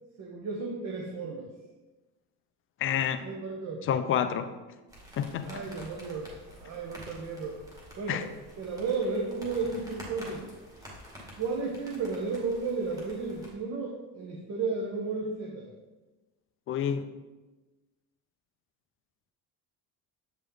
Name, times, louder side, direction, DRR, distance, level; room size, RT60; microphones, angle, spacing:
voice 1, 0.2-1.5 3.2-3.8 5.4-6.3 6.5-7.6 8.0-8.2 8.6-10.5 11.4-15.7, right 4 dB, 40° right, -2 dB, 1.0 m, -33 dB
voice 2, 2.8-3.3 3.9-4.5 5.2-5.6 8.1-8.3 16.7-17.1, left 9 dB, 35° left, 10 dB, 0.4 m, -28 dB
sound 1, 4.9-13.5, equal, 10° right, 1.8 m, -49 dB
8.1 x 5.1 x 3.8 m, 1.2 s
cardioid pair, 150°, 38 cm